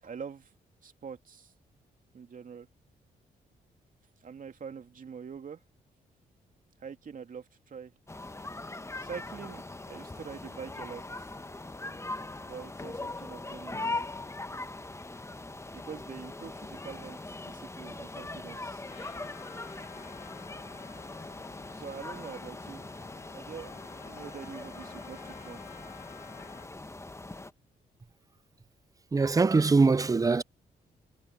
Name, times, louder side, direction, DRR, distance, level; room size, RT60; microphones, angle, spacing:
voice 1, 0.0-0.5 0.8-1.5 2.1-2.7 4.2-5.6 6.8-7.9 9.0-11.3 12.4-14.1 15.7-18.9 21.7-22.8 23.3-23.7 24.1-25.6, right 6 dB, 55° right, 2.7 m, -44 dB
sound 1, 8.1-27.5, left 2 dB, 15° left, 1.2 m, -41 dB
Trumpet, 18.9-26.7, left 12 dB, 85° left, 1.9 m, -53 dB
voice 2, 29.1-30.4, right 4 dB, 20° right, 0.5 m, -22 dB
supercardioid pair, 55°, 17 cm